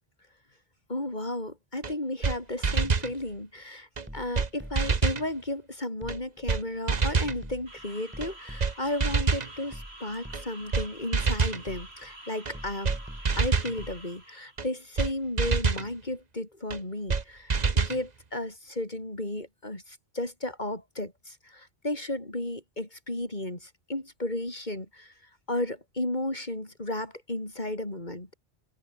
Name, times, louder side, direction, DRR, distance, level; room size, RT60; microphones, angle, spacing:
voice 1, 0.9-3.9 4.1-12.9 13.3-25.1 25.5-28.3, left 1 dB, 45° left, 4.7 m, -34 dB
sound 1, 1.8-1.9 2.2-2.4 2.6-3.1 4.0-4.1 4.4-4.5 4.8-5.3 6.1-6.2 6.5-6.6 6.9-7.4 8.2-8.3 8.6-8.7 9.0-9.5 10.3-10.4 10.7-10.9 11.1-11.6 12.5-12.6 12.8-13.0 13.3-13.7 14.6-14.7 15.0-15.1 15.4-15.9 16.7-16.8 17.1-17.2 17.5-18.0, right 5 dB, 45° right, 1.2 m, -26 dB
sound 2, 2.8-3.4 4.1-5.1 6.0-6.5 6.9-9.0 9.7-10.8 11.7-12.2 12.5-14.0, equal, 10° right, 4.7 m, -44 dB
sound 3, 7.7-14.6, right 1 dB, 85° right, 7.9 m, -48 dB
omnidirectional pair, 1.0 m